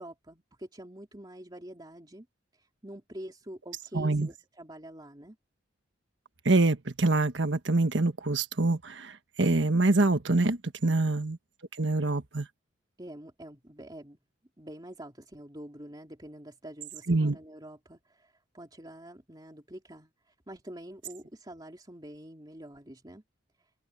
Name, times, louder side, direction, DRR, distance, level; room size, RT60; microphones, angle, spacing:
voice 1, 0.0-2.3 2.5-5.4 10.8-11.0 13.0-14.2 14.6-23.2, right 1 dB, 20° right, 3.2 m, -46 dB
voice 2, 3.9-4.3 6.4-9.1 9.4-11.4 11.8-12.5 17.1-17.4, right 2 dB, 80° right, 1.4 m, -25 dB
head